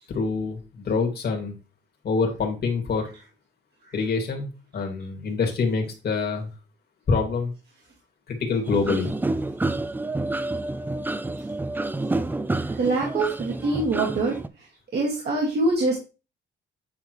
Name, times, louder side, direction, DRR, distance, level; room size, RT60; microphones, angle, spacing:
voice 1, 0.1-1.5 2.0-3.1 3.9-6.5 7.1-7.5 8.3-9.1, left 4 dB, 55° left, 2 dB, 2.1 m, -26 dB
sound 1, 8.6-14.5, right 2 dB, 10° right, 0.4 m, -29 dB
voice 2, 12.5-14.4 14.9-16.0, right 2 dB, 55° right, -3 dB, 1.9 m, -24 dB
8.4 x 3.8 x 3.0 m, 0.32 s
cardioid pair, 90°, 20 cm